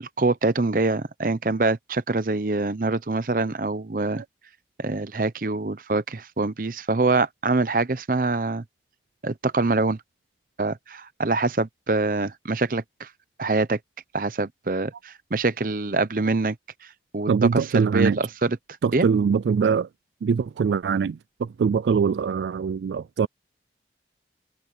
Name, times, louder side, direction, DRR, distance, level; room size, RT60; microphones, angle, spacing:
voice 1, 0.0-4.2 4.8-8.6 9.2-10.0 10.6-13.1 13.4-13.8 14.1-16.5 17.1-18.6 18.9-19.1, right 3 dB, 50° right, 0.8 m, -25 dB
voice 2, 17.3-18.2 18.8-19.9 20.2-23.3, right 6 dB, 80° right, 0.3 m, -23 dB
head